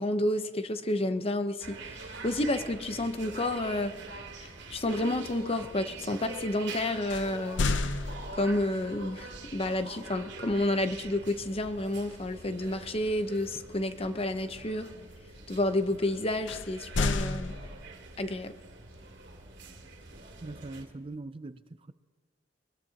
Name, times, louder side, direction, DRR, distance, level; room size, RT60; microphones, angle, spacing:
voice 1, 0.0-2.0 2.2-3.9 4.4-7.7 8.3-14.9 15.5-17.6 18.2-18.5, left 1 dB, 30° left, 0.8 m, -30 dB
sound 1, 1.6-20.8, right 3 dB, 75° right, 2.4 m, -45 dB
sound 2, 7.1-8.7 11.5-11.8 12.2-12.5 16.5-18.1, left 3 dB, 85° left, 0.7 m, -31 dB
voice 2, 20.4-21.9, right 2 dB, 30° right, 0.4 m, -42 dB
22.5 x 21.0 x 2.9 m
head